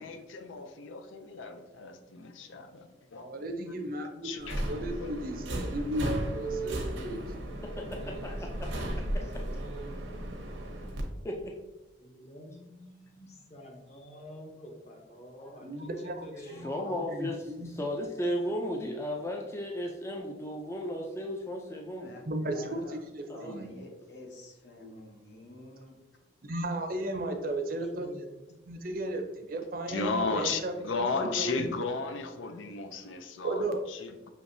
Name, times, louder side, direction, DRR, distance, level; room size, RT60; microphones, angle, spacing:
voice 1, 0.0-3.3 4.2-4.6 4.9-5.1 29.9-34.3, left 4 dB, 90° left, 0.5 m, -35 dB
voice 2, 3.2-7.2 15.6-16.2 16.5-16.7 17.1-17.7 22.3-22.8 23.1-23.7 26.4-28.1 28.7-30.7 31.0-31.7 33.4-33.8, right 1 dB, 50° right, 0.5 m, -35 dB
Subway metro underground, 4.4-11.0, right 1 dB, 85° right, 0.8 m, -35 dB
voice 3, 7.8-8.7 9.2-9.3 11.2-11.5 16.4-22.1 23.3-23.5, equal, 15° left, 0.3 m, -35 dB
voice 4, 12.0-16.7 21.1-21.2 22.5-22.6 23.3-23.5 24.8-25.0 27.3-28.7, equal, 35° left, 0.8 m, -49 dB
voice 5, 22.0-23.0 23.3-26.0, equal, 70° left, 0.9 m, -49 dB
6.2 x 2.9 x 2.6 m
head